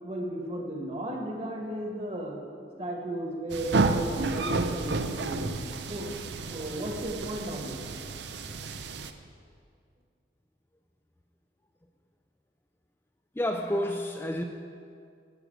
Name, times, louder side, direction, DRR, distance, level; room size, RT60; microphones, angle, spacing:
voice 1, 0.0-2.4 2.8-6.1 6.5-7.8, right 1 dB, 35° right, 0 dB, 1.7 m, -35 dB
sound 1, 3.5-9.1, right 3 dB, 70° right, 0.6 m, -31 dB
voice 2, 13.4-14.4, left 1 dB, 15° left, 3 dB, 0.4 m, -29 dB
12.0 x 6.6 x 8.1 m, 2.3 s
head